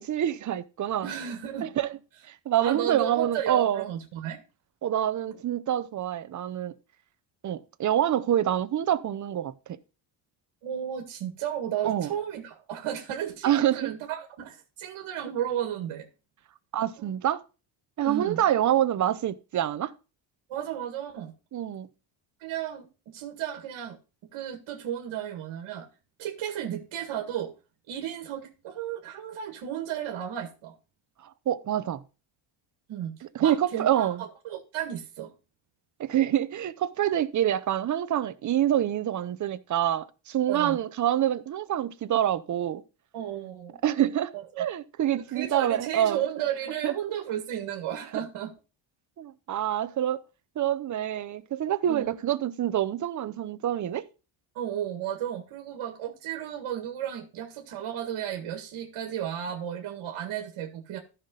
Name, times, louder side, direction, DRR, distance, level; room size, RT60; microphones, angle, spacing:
voice 1, 0.0-1.1 1.6-1.9 2.3-3.9 4.8-6.7 7.4-9.8 11.8-12.1 13.4-13.9 16.7-17.4 18.0-19.9 21.5-21.9 31.2-32.0 33.3-34.2 36.0-42.8 43.8-46.2 46.8-46.9 49.2-50.2 50.6-54.1, right 11 dB, 40° right, 0.7 m, -26 dB
voice 2, 1.0-1.7 2.6-4.4 10.6-16.1 17.0-17.1 18.0-18.4 20.5-21.3 22.4-24.0 24.3-25.9 26.2-27.5 27.9-30.7 32.9-35.3 40.5-40.8 43.1-43.8 44.3-44.7 45.3-48.5 51.9-52.1 54.6-61.0, right 10 dB, 70° right, 1.9 m, -34 dB
14.0 x 5.8 x 3.8 m
cardioid pair, 150°, 48 cm